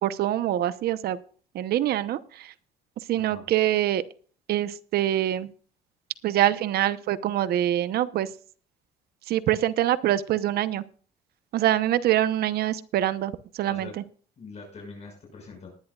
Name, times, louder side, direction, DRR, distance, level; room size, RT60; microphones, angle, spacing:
voice 1, 0.0-1.2 1.5-2.5 3.1-4.0 4.5-5.5 6.2-8.3 9.3-10.8 11.5-13.9, right 13 dB, 70° right, 14 dB, 0.9 m, -25 dB
voice 2, 3.1-3.4 13.7-13.9 14.4-15.7, left 4 dB, 40° left, 1 dB, 6.1 m, -43 dB
19.5 x 10.5 x 2.4 m, 0.43 s
cardioid pair, 110°, 17 cm